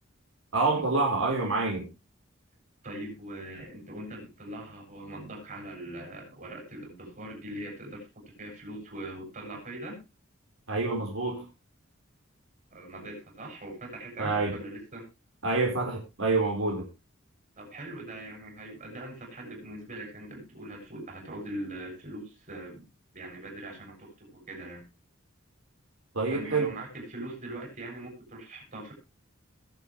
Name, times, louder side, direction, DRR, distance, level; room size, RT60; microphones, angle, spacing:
voice 1, 0.5-1.9 10.7-11.4 14.2-14.6 15.4-16.8 26.1-26.7, right 3 dB, 85° right, 0 dB, 4.8 m, -27 dB
voice 2, 2.8-8.0 8.4-10.0 12.7-15.0 17.6-22.9 23.1-24.8 26.3-28.9, right 1 dB, 40° right, 0 dB, 7.4 m, -41 dB
21.0 x 7.9 x 3.3 m, 0.27 s
head